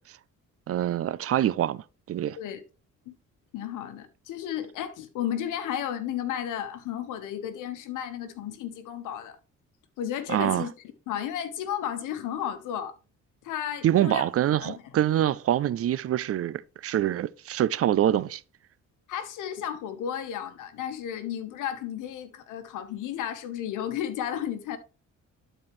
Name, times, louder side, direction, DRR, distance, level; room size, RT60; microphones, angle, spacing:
voice 1, 0.7-2.4 10.3-10.7 13.8-18.4, right 11 dB, 50° right, 0.5 m, -25 dB
voice 2, 3.5-9.4 10.0-10.7 11.1-12.9 13.4-14.3 14.6-14.8 19.1-24.8, left 10 dB, 85° left, 1.2 m, -33 dB
12.0 x 4.4 x 3.2 m
cardioid pair, 90°, 30 cm